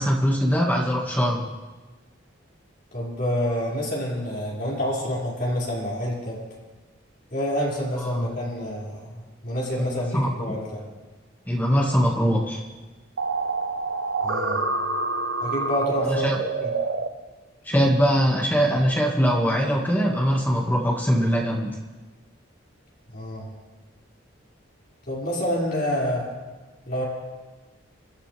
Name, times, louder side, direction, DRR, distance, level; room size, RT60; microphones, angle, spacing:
voice 1, 0.0-1.5 8.0-8.3 9.7-9.8 10.1-10.5 11.5-12.6 16.0-16.4 17.6-21.7, equal, 10° left, -2 dB, 1.9 m, -22 dB
voice 2, 2.9-6.4 7.3-10.9 14.2-14.6 15.4-16.7 23.1-23.5 25.1-26.3 26.8-27.0, equal, 50° left, -6 dB, 5.7 m, -28 dB
sound 1, 13.2-17.1, right 3 dB, 70° right, 1.0 m, -27 dB
27.5 x 12.0 x 3.5 m, 1.3 s
head